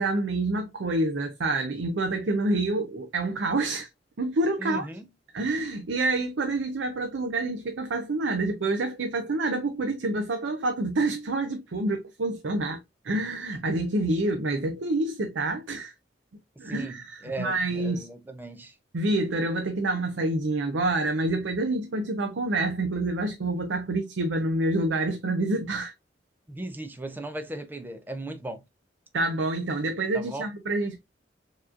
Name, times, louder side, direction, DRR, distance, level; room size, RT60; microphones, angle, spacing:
voice 1, 0.0-3.9 4.2-4.9 5.3-15.9 16.6-18.1 18.9-25.9 29.1-31.0, right 2 dB, 80° right, 0.6 m, -27 dB
voice 2, 4.6-5.1 16.6-18.7 26.5-28.6 30.1-30.5, right 1 dB, 10° right, 0.6 m, -37 dB
4.6 x 3.0 x 2.4 m
head